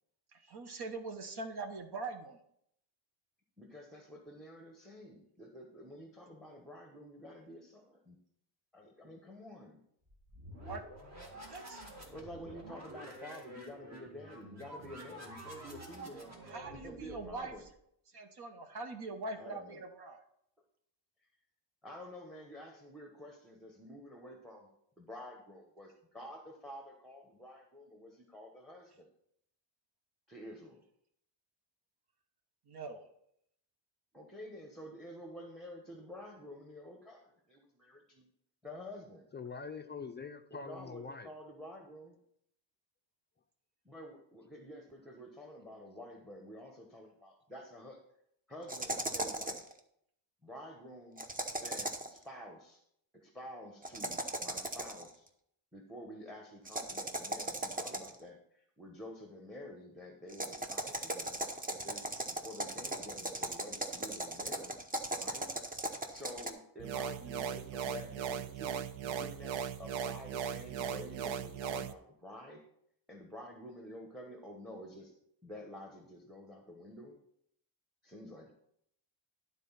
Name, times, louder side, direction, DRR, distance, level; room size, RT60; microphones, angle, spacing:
voice 1, 0.3-2.4 10.6-10.8 11.3-11.9 16.4-17.5 18.1-20.2 32.7-33.0, right 3 dB, 55° right, 6 dB, 1.2 m, -43 dB
voice 2, 3.6-8.2 8.7-9.8 12.1-16.3 16.8-17.6 19.4-19.8 21.8-24.7 25.0-29.1 30.3-30.8 34.1-38.3 38.6-39.3 40.5-42.2 43.8-48.0 48.5-49.7 50.4-51.2 51.5-52.8 53.1-55.3 55.7-61.4 61.7-64.7 65.2-65.5 66.1-72.6 73.1-75.1 75.4-77.2 78.0-78.5, equal, ahead, 2 dB, 1.1 m, -49 dB
sound 1, 10.1-17.7, right 1 dB, 35° right, 2.1 m, -49 dB
voice 3, 39.3-41.3, left 5 dB, 25° left, 6 dB, 0.4 m, -44 dB
sound 2, 48.7-49.7 51.2-52.2 53.8-55.1 56.7-58.2 60.3-66.5, right 1 dB, 20° right, 0.8 m, -38 dB
sound 3, 66.8-71.9, right 8 dB, 75° right, 0.6 m, -38 dB
11.5 x 4.0 x 5.7 m, 0.73 s
wide cardioid pair, 140°, 45 cm